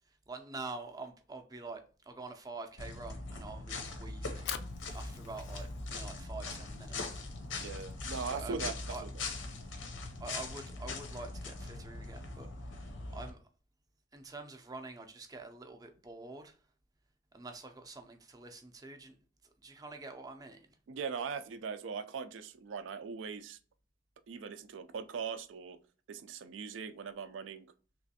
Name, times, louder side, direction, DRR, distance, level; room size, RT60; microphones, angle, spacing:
voice 1, 0.1-4.5 4.9-7.2 8.3-8.6 8.9-9.0 10.2-13.4 14.1-16.6 17.3-19.2 19.6-20.8, right 3 dB, 20° right, 0.4 m, -46 dB
sound 1, 2.8-13.3, left 3 dB, 90° left, 0.7 m, -41 dB
Fire, 4.2-10.4, left 10 dB, 60° left, 0.3 m, -49 dB
voice 2, 7.5-8.7 9.0-9.1 20.9-23.6 24.3-25.8 26.1-27.7, right 5 dB, 85° right, 0.4 m, -40 dB
3.2 x 3.0 x 2.7 m
head